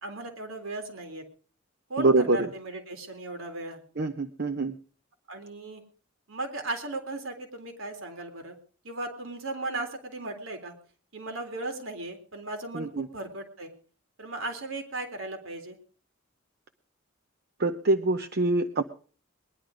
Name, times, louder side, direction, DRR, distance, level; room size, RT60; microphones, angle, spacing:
voice 1, 0.0-1.2 1.9-3.8 5.3-5.8 6.3-8.6 8.8-10.7 11.1-13.7 14.2-15.8, right 2 dB, 80° right, 5 dB, 3.6 m, -36 dB
voice 2, 2.0-2.5 4.0-4.8 12.7-13.1 17.6-18.8, right 2 dB, 50° right, 8 dB, 0.9 m, -25 dB
21.0 x 11.5 x 5.1 m, 0.42 s
head